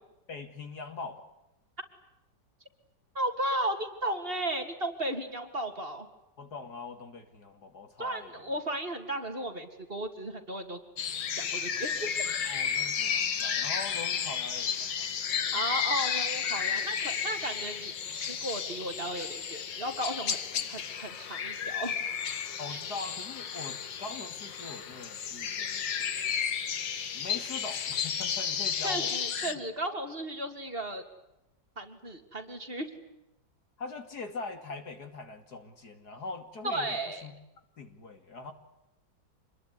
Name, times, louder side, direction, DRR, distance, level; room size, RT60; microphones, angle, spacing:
voice 1, 0.3-1.3 6.4-8.3 12.4-15.5 22.6-25.8 27.1-29.1 29.4-29.5 33.8-37.3 37.8-38.5, left 3 dB, 60° left, 7 dB, 3.2 m, -42 dB
voice 2, 3.1-6.1 8.0-10.8 11.3-12.3 13.3-13.4 15.5-22.0 22.7-22.8 28.8-31.0 31.8-32.9 36.6-37.3, right 1 dB, 30° right, 5 dB, 3.1 m, -35 dB
sound 1, 11.0-29.5, left 7 dB, 80° left, 2.1 m, -33 dB
27.0 x 21.5 x 9.7 m, 0.90 s
omnidirectional pair, 2.0 m